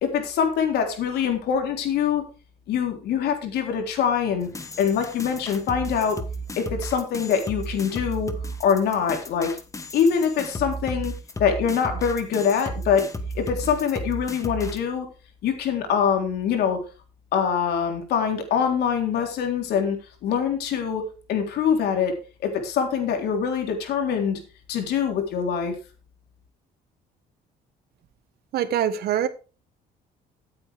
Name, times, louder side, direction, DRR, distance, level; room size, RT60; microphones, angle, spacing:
voice 1, 0.0-2.2 2.7-4.5 4.8-6.2 6.6-8.3 8.6-9.6 9.9-11.1 11.4-13.0 13.4-15.1 15.4-16.8 17.3-20.0 20.2-22.1 22.4-24.4 24.7-25.7, left 7 dB, 75° left, 4 dB, 3.6 m, -24 dB
sound 1, 4.4-14.8, right 1 dB, 20° left, 1.5 m, -34 dB
voice 2, 28.5-29.3, right 10 dB, 65° right, 12 dB, 1.5 m, -23 dB
14.5 x 8.7 x 3.5 m, 0.33 s
cardioid pair, 110°, 17 cm